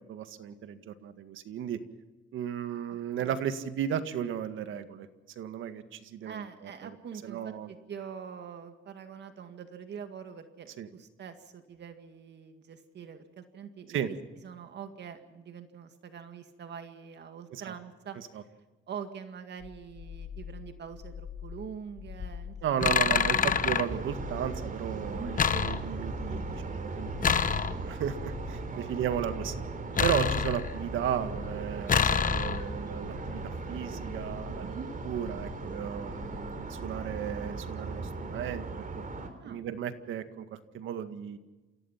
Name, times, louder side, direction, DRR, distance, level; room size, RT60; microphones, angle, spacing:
voice 1, 0.1-1.8 2.3-5.1 5.4-7.0 7.2-7.7 10.8-10.9 13.9-14.1 17.5-17.7 22.6-29.6 30.0-34.7 35.0-38.8 39.5-41.4, right 9 dB, 80° right, 10 dB, 1.9 m, -35 dB
voice 2, 2.9-3.4 6.2-14.2 14.4-18.2 18.9-23.2 25.1-25.3 28.7-28.9 34.6-34.9 39.4-39.6, right 7 dB, 60° right, 8 dB, 2.0 m, -44 dB
sound 1, 19.6-37.2, left 8 dB, 80° left, 1.9 m, -46 dB
sound 2, 22.1-22.3 22.8-23.9 25.4-26.2 27.2-28.1 30.0-30.9 31.9-32.8, left 7 dB, 40° left, 1.2 m, -27 dB
sound 3, 23.3-39.3, right 4 dB, 45° right, 3.7 m, -38 dB
28.5 x 16.5 x 5.8 m, 1.2 s
cardioid pair, 90°, 20 cm